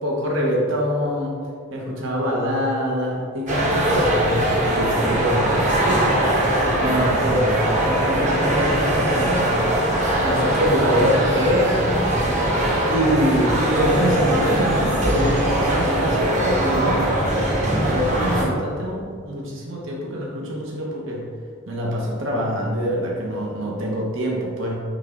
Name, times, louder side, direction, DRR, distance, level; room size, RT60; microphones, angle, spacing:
voice 1, 0.0-1.3 1.7-6.2 6.8-9.5 10.2-11.9 12.9-17.1 17.7-21.2 21.7-24.8, equal, 60° right, -3 dB, 1.2 m, -24 dB
sound 1, 3.5-18.4, right 1 dB, 35° right, 1.3 m, -21 dB
9.9 x 3.5 x 3.8 m, 2.1 s
head